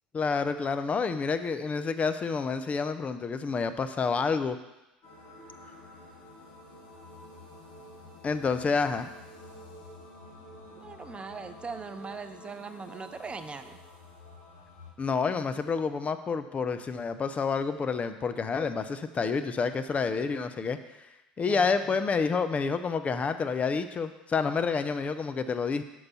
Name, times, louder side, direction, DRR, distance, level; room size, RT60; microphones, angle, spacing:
voice 1, 0.1-4.6 8.2-9.1 15.0-20.8 21.4-25.8, left 5 dB, 30° left, 10 dB, 0.5 m, -29 dB
sound 1, 5.0-14.9, left 1 dB, 60° left, 1.8 m, -49 dB
voice 2, 10.7-13.8 21.4-21.9, right 4 dB, 25° right, 10 dB, 0.4 m, -40 dB
6.5 x 4.7 x 5.6 m, 0.98 s
hypercardioid pair, 70°, 5 cm